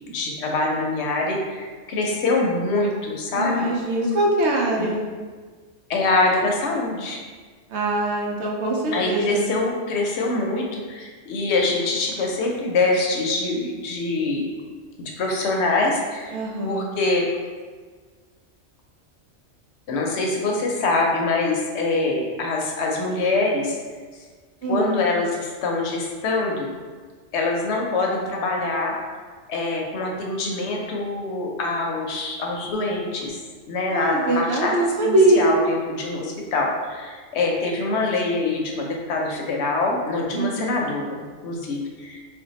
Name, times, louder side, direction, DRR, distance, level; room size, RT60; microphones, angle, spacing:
voice 1, 0.1-3.7 4.8-4.9 5.9-7.2 8.9-14.5 15.0-16.4 16.6-17.2 19.9-23.8 24.7-26.7 27.3-28.9 29.5-33.4 33.7-34.7 35.0-42.2, left 2 dB, 70° left, 0 dB, 0.8 m, -24 dB
voice 2, 3.3-5.1 7.7-9.5 16.3-16.9 24.6-25.0 33.9-35.5 40.3-40.8, right 1 dB, 70° right, -1 dB, 0.8 m, -22 dB
2.5 x 2.2 x 3.9 m, 1.5 s
omnidirectional pair, 1.2 m